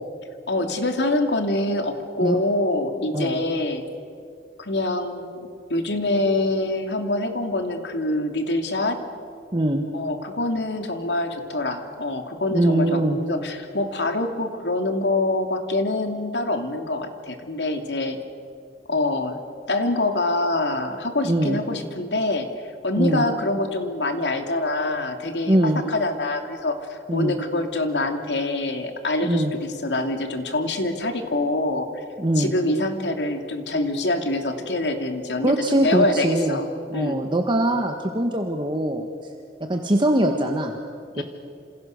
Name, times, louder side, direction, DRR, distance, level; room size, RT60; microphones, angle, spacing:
voice 1, 0.5-3.8 4.6-9.0 9.9-18.2 18.9-19.4 19.7-22.5 22.8-32.0 32.4-35.5 35.8-36.7 36.9-37.2 41.1-41.2, left 2 dB, 80° left, 5 dB, 2.8 m, -25 dB
voice 2, 9.5-9.9 12.5-13.2 21.2-21.6 23.0-23.2 25.5-25.8 27.1-27.4 29.2-29.5 32.2-32.5 35.4-36.6 36.9-39.0 39.7-40.7 41.2-41.3, right 1 dB, 30° right, 4 dB, 1.6 m, -22 dB
28.5 x 27.5 x 6.7 m, 2.4 s
head